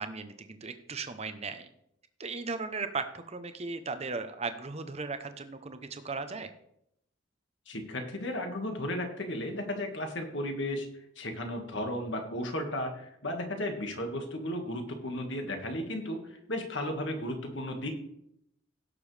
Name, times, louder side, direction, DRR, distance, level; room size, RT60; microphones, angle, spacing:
voice 1, 0.0-1.7 2.2-6.5, right 4 dB, 35° right, 9 dB, 0.8 m, -37 dB
voice 2, 7.7-10.9 11.2-18.0, left 1 dB, 65° left, 3 dB, 1.8 m, -34 dB
16.5 x 6.9 x 3.4 m, 0.77 s
head